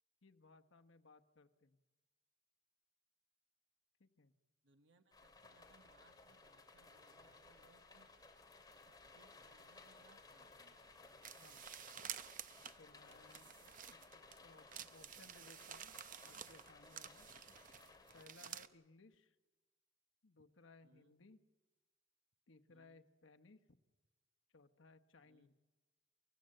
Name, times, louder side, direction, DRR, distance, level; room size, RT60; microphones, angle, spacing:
voice 1, 0.2-1.8 4.0-4.3 11.4-11.7 12.8-13.5 13.9-16.0 16.2-17.3 18.1-19.4 20.2-21.4 22.5-23.6 24.5-25.5, left 3 dB, 85° left, 7 dB, 1.1 m, -64 dB
voice 2, 4.6-8.1 8.9-10.8 13.4-13.7 14.4-15.3 18.4-18.6 20.8-21.2 22.7-23.1 25.2-25.5, right 3 dB, 70° right, 6 dB, 1.1 m, -72 dB
sound 1, 5.1-18.2, left 3 dB, 20° left, 2.5 m, -61 dB
sound 2, 11.2-14.4 14.7-18.7, right 9 dB, 45° right, 0.7 m, -51 dB
29.0 x 15.5 x 7.7 m, 1.2 s
head